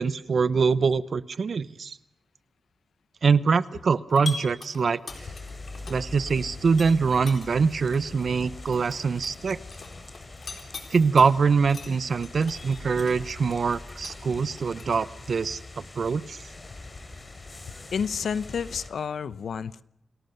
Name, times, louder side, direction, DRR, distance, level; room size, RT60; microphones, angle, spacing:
voice 1, 0.0-2.0 3.2-5.0 5.9-9.6 10.9-16.4, right 5 dB, 55° right, 16 dB, 0.9 m, -24 dB
sound 1, 4.1-6.3 6.7-11.3 11.7-14.9, left 4 dB, 50° left, 4.0 m, -41 dB
sound 2, 5.1-18.9, left 2 dB, 30° left, 3.3 m, -42 dB
voice 2, 17.9-19.8, left 6 dB, 80° left, 16 dB, 0.8 m, -30 dB
29.0 x 20.0 x 6.8 m, 0.78 s
wide cardioid pair, 165°, 0 cm